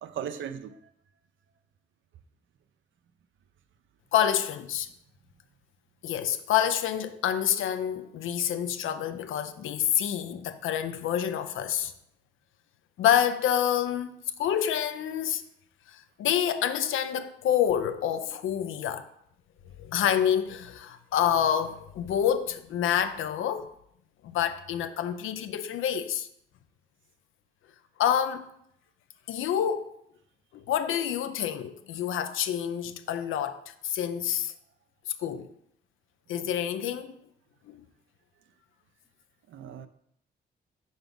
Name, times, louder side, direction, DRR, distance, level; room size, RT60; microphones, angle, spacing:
voice 1, 0.0-0.8 39.5-39.9, right 8 dB, 80° right, 0.5 m, -37 dB
voice 2, 4.1-4.9 6.0-11.9 13.0-15.4 15.9-19.1 19.8-23.7 24.2-26.3 28.0-28.5 29.3-29.9 30.5-33.6 33.8-34.5 35.2-35.5 36.3-37.1, left 9 dB, 90° left, 0.4 m, -27 dB
4.6 x 3.9 x 5.2 m
cardioid pair, 60°, 20 cm